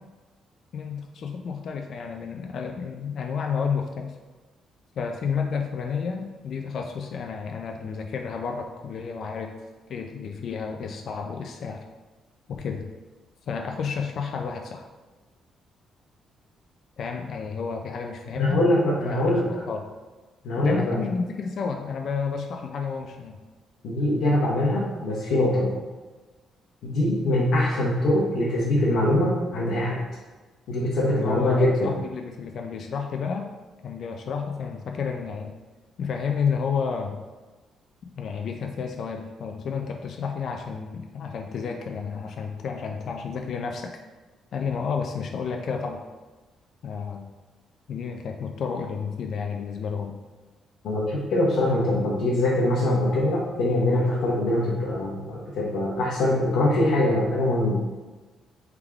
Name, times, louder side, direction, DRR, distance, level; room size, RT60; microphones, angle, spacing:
voice 1, 0.7-4.2 5.0-9.5 9.9-11.8 12.5-12.9 13.5-14.9 17.0-18.6 19.0-19.9 20.6-23.4 31.1-33.5 33.8-35.6 36.0-37.2 38.0-44.0 44.5-46.0 46.8-47.3 47.9-50.2, left 6 dB, 65° left, 3 dB, 0.3 m, -31 dB
voice 2, 18.3-19.4 20.4-21.0 23.8-25.7 26.8-30.0 30.7-32.0 50.8-57.8, left 1 dB, 80° left, -6 dB, 0.9 m, -23 dB
3.5 x 3.4 x 3.4 m, 1.3 s
cardioid pair, 90°, 0 cm